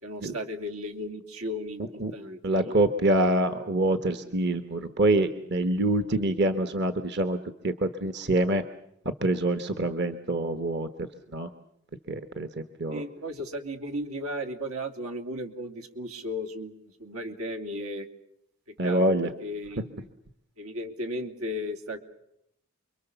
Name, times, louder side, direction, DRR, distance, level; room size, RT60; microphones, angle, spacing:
voice 1, 0.0-2.7 12.9-18.1 18.7-20.1 20.6-22.0, equal, 85° right, 6 dB, 3.0 m, -35 dB
voice 2, 2.4-7.4 7.6-8.6 9.2-10.9 11.3-11.5 12.1-12.5 12.8-13.0 18.8-19.3, right 1 dB, 50° right, 9 dB, 1.2 m, -25 dB
29.5 x 23.0 x 7.0 m, 0.77 s
head